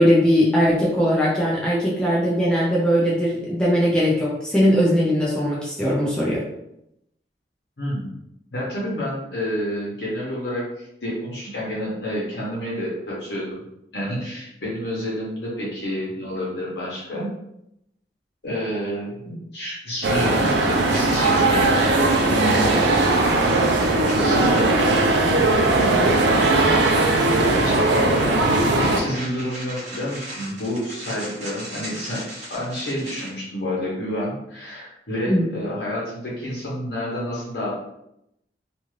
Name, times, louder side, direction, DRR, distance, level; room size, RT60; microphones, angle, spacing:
voice 1, 0.0-6.4 35.3-35.5, equal, 5° left, -6 dB, 0.5 m, -19 dB
voice 2, 7.8-8.1 8.5-13.6 13.9-17.3 18.4-21.7 23.9-24.7 25.6-32.2 32.5-37.7, equal, 65° left, -6 dB, 0.9 m, -29 dB
sound 1, 20.0-29.0, right 2 dB, 75° right, 0.4 m, -19 dB
sound 2, 20.9-33.3, right 1 dB, 40° right, 0.9 m, -37 dB
2.4 x 2.4 x 3.1 m, 0.82 s
head